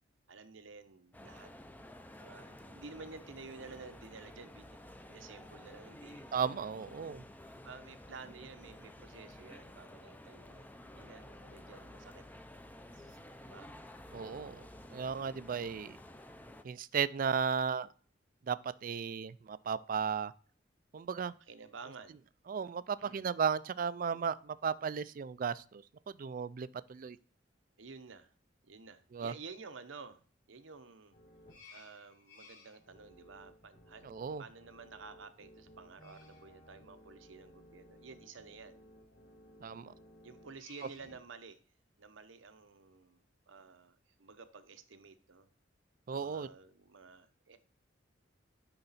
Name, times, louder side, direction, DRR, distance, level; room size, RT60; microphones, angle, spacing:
voice 1, 0.3-1.5 2.2-4.8 5.1-6.3 7.6-12.2 12.9-13.7 21.5-22.2 23.0-23.3 27.8-28.3 28.6-30.2 30.5-31.1 31.7-34.1 34.4-38.8 40.2-41.6 42.0-45.5 46.1-47.6, right 4 dB, 90° right, 0.8 m, -52 dB
sound 1, 1.1-16.6, left 1 dB, 10° left, 0.5 m, -52 dB
voice 2, 6.3-7.2 14.1-14.7 14.9-16.0 16.6-17.9 18.5-18.6 18.8-20.3 20.9-21.3 22.5-25.8 26.2-27.2 29.1-29.3 34.0-34.4 39.6-39.9 46.1-46.5, right 6 dB, 45° right, 0.4 m, -35 dB
sound 2, 31.1-41.2, left 1 dB, 50° left, 4.1 m, -58 dB
9.9 x 3.9 x 4.0 m
head